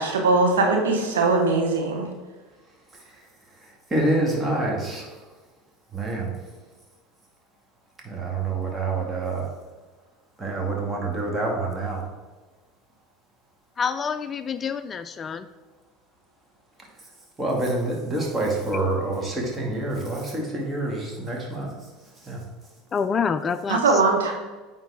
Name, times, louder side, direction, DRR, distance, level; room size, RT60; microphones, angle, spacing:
voice 1, 0.0-2.1 23.7-24.3, right 3 dB, 80° right, 1 dB, 1.1 m, -20 dB
voice 2, 3.6-5.1 5.9-6.3 8.0-9.5 10.4-12.0 17.4-21.7 22.2-22.4, right 2 dB, 20° right, -1 dB, 2.2 m, -27 dB
voice 3, 13.8-15.5 22.9-23.8, left 6 dB, 30° left, 12 dB, 0.3 m, -27 dB
9.0 x 4.1 x 3.6 m, 1.3 s
hypercardioid pair, 80°, 0 cm